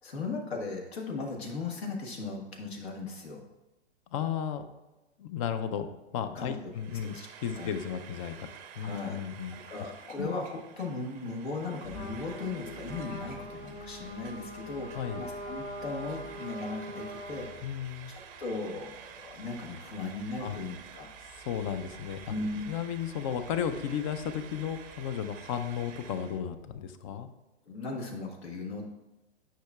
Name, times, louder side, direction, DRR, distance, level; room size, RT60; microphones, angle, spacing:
voice 1, 0.0-3.4 6.3-6.6 6.9-7.3 7.5-7.7 8.8-9.2 9.5-17.7 18.1-21.1 22.3-22.6 27.7-28.8, left 3 dB, 65° left, 0 dB, 1.5 m, -37 dB
voice 2, 4.1-4.6 5.2-8.5 8.8-9.6 10.2-10.3 14.9-15.2 17.6-18.1 20.4-20.6 21.5-22.3 22.7-27.3, left 8 dB, 30° left, 10 dB, 0.5 m, -34 dB
Frying (food), 6.7-26.4, right 8 dB, 25° right, 0.6 m, -50 dB
Vehicle, 11.3-26.7, equal, 15° left, 1.0 m, -54 dB
Trumpet, 11.9-17.5, equal, 85° left, 2.4 m, -42 dB
10.0 x 5.7 x 2.3 m, 1.0 s
hypercardioid pair, 115°, 34 cm